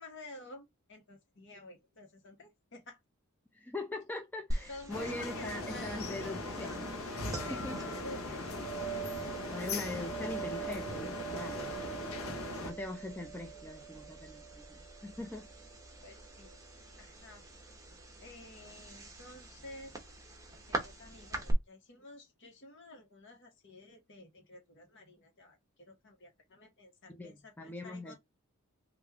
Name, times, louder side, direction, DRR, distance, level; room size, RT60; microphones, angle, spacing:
voice 1, 0.0-3.0 4.7-6.3 7.5-8.4 16.0-16.6 17.0-17.4 18.2-20.0 20.7-25.6 25.9-28.2, left 2 dB, 60° left, 1.2 m, -51 dB
voice 2, 3.5-6.9 7.5-7.8 9.5-11.7 12.6-15.5 27.1-28.2, left 2 dB, 10° left, 0.4 m, -41 dB
sound 1, 4.5-21.5, right 3 dB, 15° right, 0.8 m, -43 dB
sound 2, 4.9-12.7, left 2 dB, 80° left, 0.8 m, -39 dB
3.2 x 2.5 x 3.4 m
head